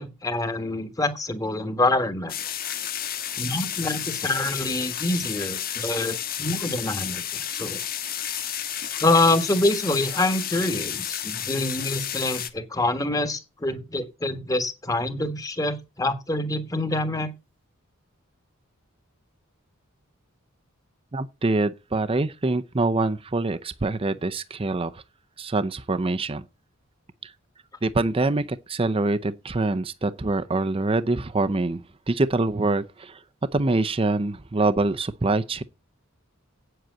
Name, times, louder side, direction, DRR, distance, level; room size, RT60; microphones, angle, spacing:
voice 1, 0.0-2.3 3.4-7.8 9.0-17.3, left 2 dB, 15° left, 1.4 m, -26 dB
sound 1, 2.3-12.5, left 10 dB, 45° left, 1.3 m, -31 dB
voice 2, 21.1-25.0 25.4-26.4 27.2-27.3 27.8-33.2 33.5-35.6, right 2 dB, 25° right, 0.5 m, -25 dB
8.7 x 7.8 x 8.0 m
head